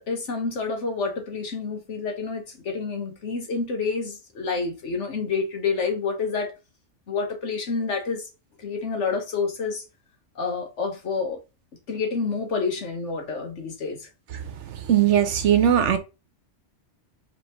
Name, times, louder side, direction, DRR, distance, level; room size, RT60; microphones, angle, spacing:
voice 1, 0.0-6.5 7.1-8.3 8.6-9.8 10.3-11.4 11.9-14.0, left 4 dB, 70° left, 1.5 m, -28 dB
voice 2, 14.7-16.0, right 9 dB, 70° right, 1.0 m, -19 dB
5.1 x 3.3 x 3.0 m
omnidirectional pair, 1.3 m